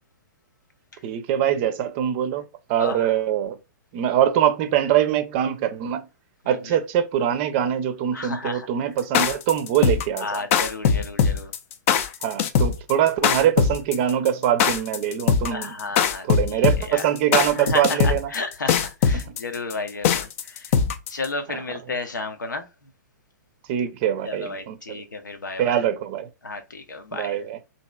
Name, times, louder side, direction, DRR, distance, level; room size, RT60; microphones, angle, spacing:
voice 1, 1.0-2.4 2.7-3.6 3.9-6.1 6.5-10.4 12.2-15.7 16.2-18.3 19.1-19.3 23.7-25.0 25.6-26.3 27.1-27.6, right 10 dB, 40° right, 0.5 m, -23 dB
voice 2, 2.8-3.1 6.4-6.8 8.1-8.7 10.2-11.5 15.5-17.1 17.6-20.8 21.1-22.7 24.2-25.8 26.4-27.4, left 3 dB, 90° left, 0.7 m, -32 dB
sound 1, 9.0-21.2, left 7 dB, 45° left, 0.4 m, -21 dB
3.0 x 2.7 x 2.2 m
hypercardioid pair, 125°, 10 cm